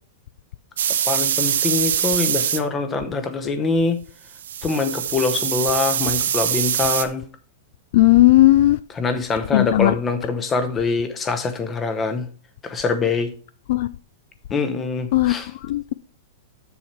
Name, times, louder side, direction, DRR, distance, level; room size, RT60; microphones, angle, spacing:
sound 1, 0.8-2.6 4.4-7.0, right 9 dB, 80° right, 0.9 m, -23 dB
voice 1, 1.1-4.0 4.6-7.2 8.9-12.3 12.6-13.3 14.5-15.5, left 4 dB, 15° left, 0.8 m, -24 dB
voice 2, 7.9-8.8 9.5-9.9 13.7-13.9 15.1-15.3 15.6-15.9, left 16 dB, 50° left, 0.3 m, -15 dB
7.3 x 7.1 x 4.5 m
supercardioid pair, 165°, 0 cm